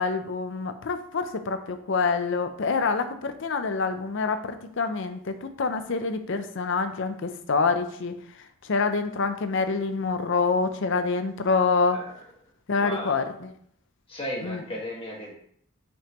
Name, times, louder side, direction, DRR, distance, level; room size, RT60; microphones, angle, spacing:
voice 1, 0.0-8.1 8.6-12.0 12.7-13.5 14.4-14.6, left 4 dB, 60° left, 8 dB, 0.5 m, -26 dB
voice 2, 12.8-13.2 14.1-15.4, left 1 dB, 25° left, -3 dB, 1.7 m, -35 dB
5.8 x 5.4 x 3.0 m, 0.64 s
head